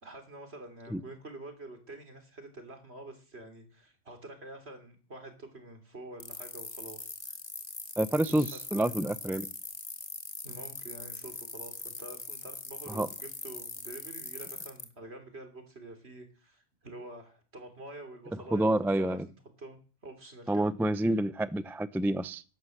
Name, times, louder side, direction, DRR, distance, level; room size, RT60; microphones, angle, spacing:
voice 1, 0.0-7.1 8.3-9.1 10.4-18.7 19.0-19.2 19.6-20.7 21.1-21.2, right 2 dB, 70° right, 3.6 m, -47 dB
sound 1, 6.2-14.8, left 3 dB, 35° left, 2.0 m, -41 dB
voice 2, 8.0-9.5 12.9-13.1 18.5-19.3 20.5-22.4, right 1 dB, 5° right, 0.4 m, -28 dB
12.0 x 11.5 x 7.9 m
omnidirectional pair, 1.1 m